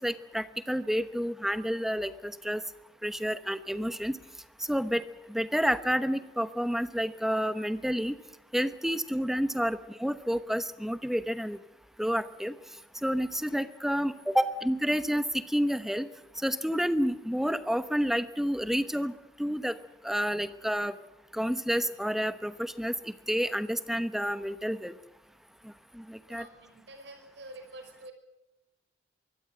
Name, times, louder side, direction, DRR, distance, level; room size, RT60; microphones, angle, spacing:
voice 1, 0.0-2.6 3.0-4.2 4.7-5.0 5.3-8.2 8.5-11.6 12.0-12.5 13.0-16.1 16.4-19.1 19.4-19.8 20.0-20.9 21.3-22.9 23.3-24.9 25.9-26.5, equal, ahead, 12 dB, 0.9 m, -29 dB
voice 2, 26.3-28.1, right 1 dB, 65° right, 6 dB, 5.6 m, -48 dB
24.0 x 16.0 x 7.8 m, 0.98 s
head